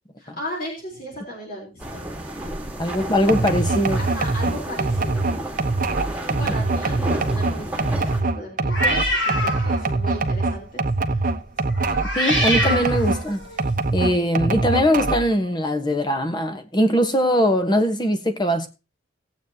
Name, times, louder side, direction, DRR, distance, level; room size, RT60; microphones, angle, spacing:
voice 1, 0.2-2.0 4.0-5.3 6.2-11.2, equal, 50° left, 4.0 m, -36 dB
sound 1, 1.8-8.2, right 1 dB, 10° right, 1.8 m, -32 dB
voice 2, 2.8-4.0 12.1-13.5 13.9-18.7, equal, 25° left, 1.3 m, -21 dB
sound 2, 3.3-13.2 13.6-15.4, right 3 dB, 45° right, 1.0 m, -23 dB
sound 3, 8.7-9.9 10.3-10.6 11.7-13.6, equal, 70° left, 7.9 m, -25 dB
18.5 x 8.1 x 2.9 m
head